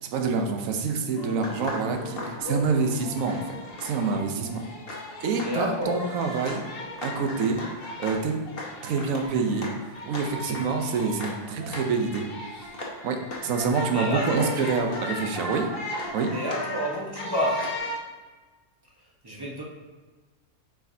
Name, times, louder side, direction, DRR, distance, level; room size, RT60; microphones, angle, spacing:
voice 1, 0.1-4.6 5.2-6.6 7.0-7.6 8.0-8.3 8.8-9.7 10.1-12.3 12.6-12.7 13.0-15.7 16.1-16.3, right 4 dB, 65° right, 4 dB, 1.1 m, -27 dB
sound 1, 1.1-18.0, left 1 dB, 45° left, 1.2 m, -36 dB
voice 2, 5.3-6.1 13.9-14.5 16.3-17.8 19.2-19.6, equal, 20° right, -3 dB, 0.9 m, -30 dB
9.1 x 4.8 x 2.7 m, 1.3 s
omnidirectional pair, 1.5 m